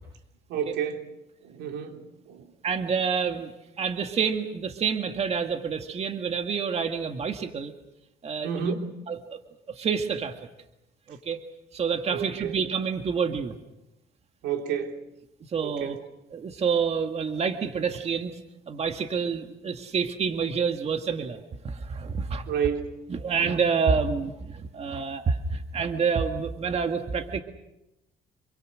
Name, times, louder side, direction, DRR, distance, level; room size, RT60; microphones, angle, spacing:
voice 1, 0.5-1.1 1.4-2.5 8.4-8.9 12.1-12.5 14.4-15.0 15.6-16.0 22.5-22.9, right 7 dB, 85° right, 4 dB, 3.3 m, -30 dB
voice 2, 2.6-3.5 3.8-7.7 8.2-8.8 9.1-9.4 9.7-10.4 11.1-11.4 11.7-13.6 15.5-16.0 16.3-18.4 18.7-21.4 21.6-22.5 23.1-27.4, right 6 dB, 40° right, 6 dB, 1.9 m, -28 dB
27.0 x 24.0 x 6.4 m, 0.92 s
cardioid pair, 110°, 17 cm